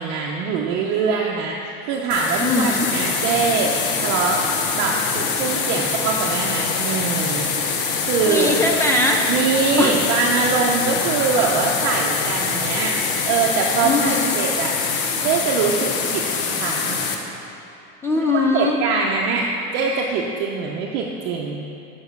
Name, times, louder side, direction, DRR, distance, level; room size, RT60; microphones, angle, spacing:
voice 1, 0.0-4.5 4.7-7.5 8.0-8.6 9.3-13.0 13.2-14.8 15.2-17.0 18.5-21.6, right 5 dB, 55° right, -1 dB, 0.7 m, -23 dB
sound 1, 2.1-17.2, left 5 dB, 55° left, 0.9 m, -24 dB
voice 2, 2.4-2.9 8.3-9.2 9.8-10.0 13.8-14.4 18.0-18.8, left 2 dB, 10° left, 0 dB, 0.3 m, -20 dB
7.1 x 5.5 x 6.6 m, 2.9 s
cardioid pair, 160°, 29 cm